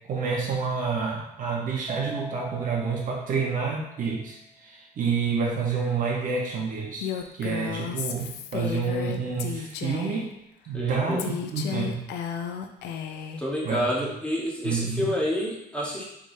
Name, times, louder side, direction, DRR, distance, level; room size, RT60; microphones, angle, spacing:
voice 1, 0.1-10.3 10.7-11.2 11.5-12.1 13.6-14.1 14.6-15.1, right 5 dB, 50° right, -1 dB, 1.0 m, -28 dB
Keyboard (musical), 1.9-4.4, right 1 dB, 25° right, 0.5 m, -42 dB
Female speech woman speaking, 7.0-10.3 11.2-13.4, left 8 dB, 85° left, 0.5 m, -33 dB
voice 2, 10.7-11.2 13.4-16.0, equal, 5° left, -5 dB, 1.2 m, -28 dB
4.6 x 3.6 x 2.7 m, 0.86 s
cardioid pair, 110°, 17 cm